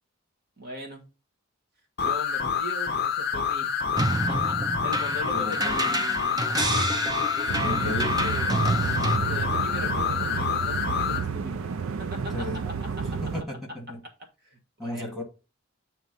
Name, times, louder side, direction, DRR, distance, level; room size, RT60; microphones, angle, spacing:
voice 1, 0.6-1.1 2.0-3.7 4.3-7.0 7.3-8.7 9.1-11.6 12.0-12.5 12.9-13.2 14.4-15.1, left 1 dB, 45° right, 1.6 m, -40 dB
sound 1, 2.0-11.2, left 7 dB, 45° left, 0.6 m, -27 dB
sound 2, 4.0-9.2, right 2 dB, 20° right, 0.5 m, -29 dB
voice 2, 5.3-6.0 7.6-8.2 12.3-12.7 13.1-14.0 14.8-15.2, left 1 dB, ahead, 1.9 m, -34 dB
sound 3, 7.5-13.4, right 6 dB, 70° right, 0.4 m, -31 dB
8.1 x 3.1 x 5.4 m
head